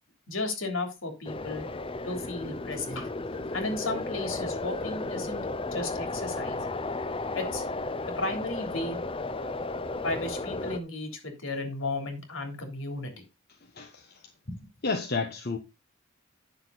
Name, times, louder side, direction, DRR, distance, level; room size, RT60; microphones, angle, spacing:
voice 1, 0.3-1.7 2.0-3.1 3.5-5.4 5.7-6.6 7.3-7.6 8.2-9.0 10.0-13.2 14.5-14.7, left 2 dB, 70° left, 3.3 m, -34 dB
sound 1, 1.2-10.8, left 2 dB, 25° left, 0.6 m, -34 dB
voice 2, 13.8-14.1 14.8-15.6, left 4 dB, 50° left, 1.1 m, -30 dB
9.8 x 6.8 x 4.0 m
head